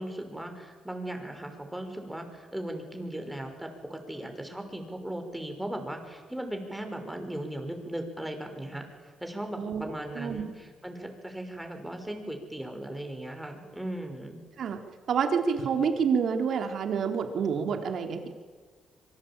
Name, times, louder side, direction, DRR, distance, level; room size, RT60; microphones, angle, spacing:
voice 1, 0.0-8.9 9.2-14.4, right 1 dB, 5° right, 5 dB, 5.9 m, -37 dB
voice 2, 9.5-9.9 10.1-10.5 14.6-14.8 15.1-18.3, right 6 dB, 65° right, 5 dB, 3.6 m, -28 dB
26.0 x 24.0 x 9.0 m, 1.5 s
cardioid pair, 90°, 0 cm